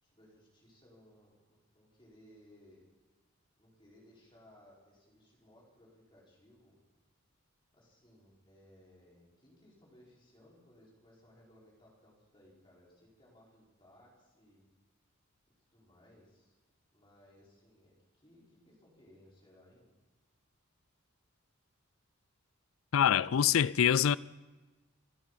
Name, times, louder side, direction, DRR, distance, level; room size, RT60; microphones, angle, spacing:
voice 1, 0.0-2.8 3.6-6.8 7.7-14.6 15.7-16.5 16.9-19.9, left 1 dB, 25° left, 4.8 m, -62 dB
voice 2, 22.9-24.2, left 9 dB, 75° left, 0.4 m, -25 dB
26.5 x 11.5 x 4.1 m
head